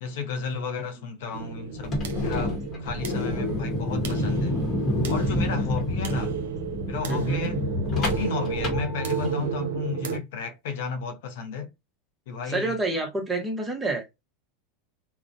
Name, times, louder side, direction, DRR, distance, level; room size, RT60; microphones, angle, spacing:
voice 1, 0.0-2.0 2.2-4.6 5.1-6.4 6.9-11.7 12.3-12.7, left 5 dB, 70° left, 0.5 m, -33 dB
sound 1, 1.3-10.2, right 6 dB, 90° right, 0.5 m, -32 dB
sound 2, 1.7-9.5, left 1 dB, 30° left, 1.0 m, -29 dB
voice 2, 7.1-7.5 12.5-14.1, right 2 dB, 15° right, 0.8 m, -28 dB
2.4 x 2.0 x 2.5 m
supercardioid pair, 115°, 0 cm